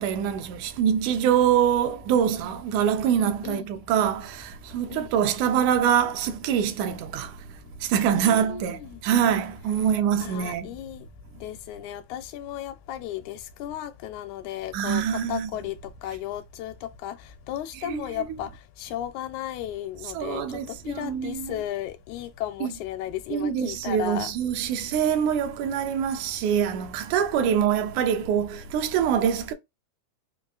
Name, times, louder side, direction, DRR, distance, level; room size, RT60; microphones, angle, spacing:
voice 1, 0.0-7.3 7.8-10.7 14.7-15.5 17.8-18.4 20.1-21.6 22.6-22.7 23.3-29.5, right 8 dB, 85° right, 2.1 m, -24 dB
voice 2, 8.1-9.0 10.2-11.1 11.4-15.8 16.0-17.2 17.5-18.5 18.8-24.3 27.5-27.6, left 11 dB, 80° left, 1.9 m, -35 dB
5.4 x 2.4 x 2.3 m
omnidirectional pair, 3.4 m